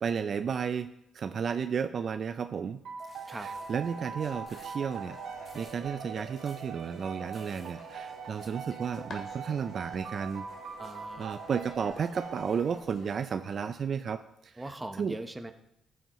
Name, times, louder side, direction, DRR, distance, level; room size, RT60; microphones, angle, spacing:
voice 1, 0.0-2.8 3.3-5.2 5.5-10.4 11.2-15.2, right 6 dB, 50° right, 10 dB, 0.4 m, -33 dB
sound 1, 2.8-13.2, right 5 dB, 70° right, 1.4 m, -42 dB
sound 2, 3.0-3.7 4.5-4.8 5.5-5.8 6.4-6.7 7.3-7.7 8.4-8.5, left 1 dB, 20° left, 2.1 m, -57 dB
sound 3, 3.5-13.2, left 3 dB, 55° left, 2.1 m, -52 dB
voice 2, 10.8-11.4 14.6-15.5, right 1 dB, 15° right, 7 dB, 0.9 m, -40 dB
14.0 x 7.8 x 3.1 m, 0.81 s
cardioid pair, 110°, 0 cm